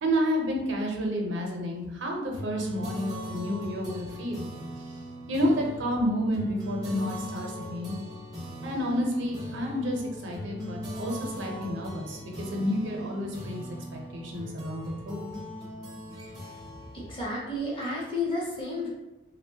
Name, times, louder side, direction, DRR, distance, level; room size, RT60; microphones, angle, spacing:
voice 1, 0.0-4.4 5.3-7.9 8.6-13.6 13.9-15.2, equal, 80° right, 0 dB, 0.6 m, -30 dB
sound 1, 2.3-18.2, equal, 20° right, 0.5 m, -40 dB
voice 2, 16.9-18.9, left 2 dB, 25° left, -5 dB, 0.7 m, -31 dB
2.9 x 2.1 x 2.7 m, 1.0 s
head